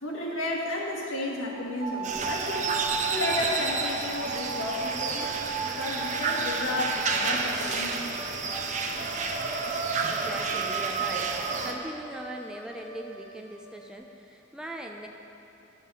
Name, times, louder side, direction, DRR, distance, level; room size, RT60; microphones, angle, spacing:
voice 1, 0.0-2.7 3.1-8.1, left 1 dB, 85° left, -3 dB, 1.9 m, -32 dB
sound 1, 1.8-7.7 7.9-13.9, right 3 dB, 65° right, 1.9 m, -37 dB
sound 2, 2.0-11.7, right 4 dB, 35° right, 0.7 m, -30 dB
voice 2, 9.6-15.1, equal, 5° right, 1 dB, 0.5 m, -40 dB
11.0 x 7.2 x 5.5 m, 2.9 s
head